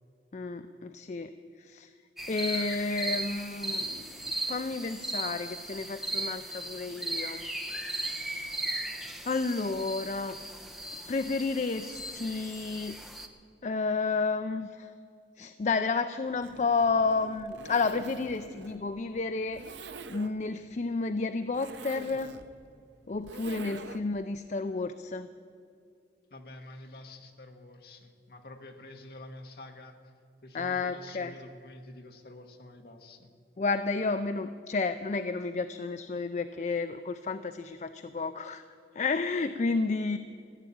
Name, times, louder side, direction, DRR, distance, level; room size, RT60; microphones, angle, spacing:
voice 1, 0.3-1.3 1.6-1.9 2.3-7.5 9.3-10.4 11.1-13.0 13.6-14.9 15.4-19.6 20.1-22.3 23.1-25.3 30.5-31.3 33.6-38.6 38.9-40.2, left 4 dB, 40° left, 10 dB, 0.4 m, -31 dB
sound 1, 2.2-13.3, right 1 dB, ahead, 0.8 m, -37 dB
Zipper (clothing), 16.3-24.2, right 3 dB, 85° right, 0.7 m, -46 dB
voice 2, 26.3-29.9 30.4-33.3, left 1 dB, 55° left, 4 dB, 1.5 m, -48 dB
15.0 x 10.0 x 8.6 m, 2.4 s
head